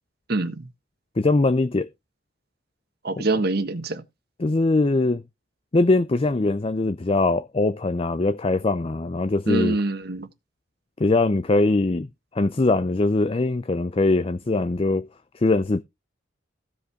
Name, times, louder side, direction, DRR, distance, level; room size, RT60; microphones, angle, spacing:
voice 1, 0.3-0.7 3.0-4.0 9.5-10.3, right 2 dB, 55° right, 1.4 m, -25 dB
voice 2, 1.2-1.9 3.2-3.3 4.4-5.2 5.7-9.8 11.0-12.1 12.3-15.1 15.3-15.8, left 2 dB, 30° left, 0.5 m, -22 dB
15.0 x 5.4 x 4.9 m
head